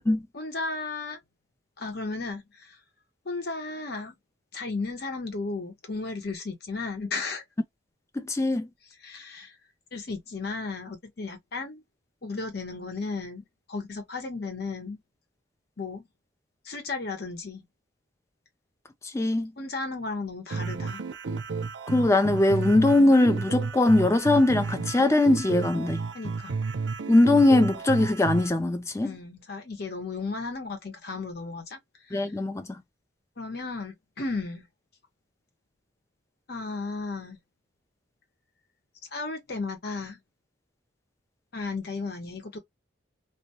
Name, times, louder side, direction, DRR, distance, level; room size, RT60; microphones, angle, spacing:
voice 1, 0.3-1.2 1.8-2.8 3.2-4.1 4.5-7.4 9.0-9.6 9.9-11.8 12.2-15.0 15.8-16.1 16.6-17.6 19.6-21.0 26.1-26.6 29.0-31.8 32.1-32.3 33.4-34.6 36.5-37.4 39.1-40.2 41.5-42.6, left 3 dB, 55° left, 0.8 m, -34 dB
voice 2, 8.2-8.7 19.0-19.5 21.9-26.0 27.1-29.1 32.1-32.8, left 2 dB, 15° left, 0.3 m, -21 dB
sound 1, 20.5-28.5, right 4 dB, 65° right, 0.4 m, -32 dB
2.2 x 2.1 x 2.8 m
head